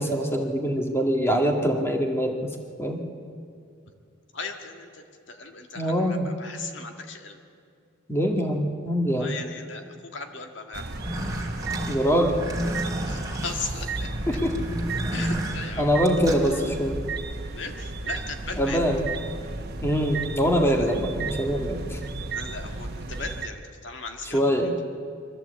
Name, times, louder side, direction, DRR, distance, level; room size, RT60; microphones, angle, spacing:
voice 1, 0.0-2.5 2.8-3.0 5.8-6.3 8.1-9.3 11.9-12.3 14.3-14.6 15.8-17.0 18.6-19.1 19.8-22.0 24.2-24.8, equal, 15° left, 2 dB, 1.9 m, -24 dB
voice 2, 4.3-5.0 5.3-7.4 9.1-9.8 10.1-10.8 11.1-11.2 11.8-11.9 12.8-14.1 15.1-16.0 16.3-16.4 17.5-18.8 22.3-24.7, left 4 dB, 70° left, 4 dB, 1.9 m, -37 dB
sound 1, 10.7-23.5, right 3 dB, 55° right, 1.1 m, -34 dB
sound 2, 10.9-16.5, right 1 dB, 20° right, 2.6 m, -31 dB
23.0 x 14.5 x 8.2 m, 2.3 s
head